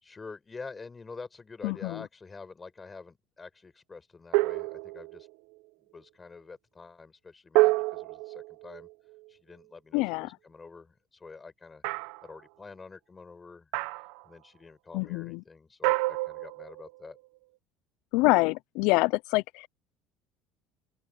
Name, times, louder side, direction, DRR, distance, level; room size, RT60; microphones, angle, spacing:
voice 1, 0.0-5.3 5.8-8.9 9.3-11.8 12.2-13.7 14.2-17.2, left 4 dB, 20° left, 5.6 m, -47 dB
voice 2, 1.6-2.0 9.9-10.3 14.9-15.4 18.1-19.7, left 24 dB, 75° left, 0.4 m, -26 dB
sound 1, 4.3-5.3 7.5-9.3 11.8-12.3 13.7-14.2 15.8-17.1, right 22 dB, 80° right, 0.8 m, -28 dB
open air
cardioid pair, 130°, 0 cm